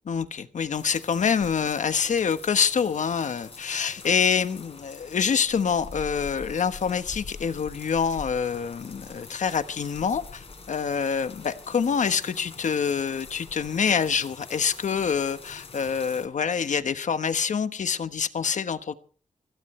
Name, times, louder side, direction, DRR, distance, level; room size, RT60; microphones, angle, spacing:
voice 1, 0.0-18.9, left 6 dB, 80° left, 1.2 m, -26 dB
sound 1, 0.7-16.3, left 4 dB, 50° left, 4.2 m, -45 dB
24.5 x 16.5 x 3.2 m
wide cardioid pair, 150°, 13 cm